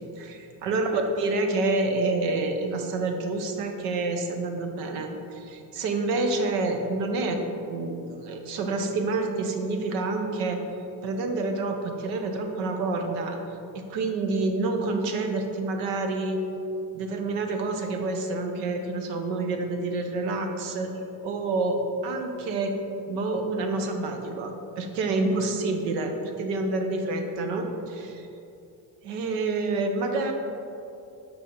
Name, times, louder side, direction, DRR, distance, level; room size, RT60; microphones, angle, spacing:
voice 1, 0.0-7.4 7.7-10.6 11.0-13.4 13.7-16.4 16.9-20.9 21.2-22.7 23.1-28.3 29.0-30.3, right 3 dB, 90° right, 5 dB, 0.8 m, -28 dB
7.3 x 4.5 x 3.7 m, 2.8 s
cardioid pair, 105°, 43 cm